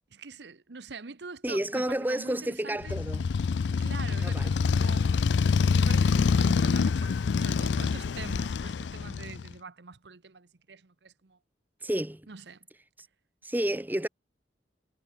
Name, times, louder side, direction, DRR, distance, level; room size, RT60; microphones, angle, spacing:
voice 1, 0.1-2.9 3.8-5.4 5.8-11.4 12.3-12.7, right 4 dB, 70° right, 1.0 m, -44 dB
voice 2, 1.4-3.2 3.7-4.5 11.8-12.3 13.0-13.1 13.4-14.1, right 1 dB, 10° right, 1.1 m, -31 dB
Motorcycle, 2.8-9.5, left 5 dB, 80° left, 0.4 m, -26 dB
head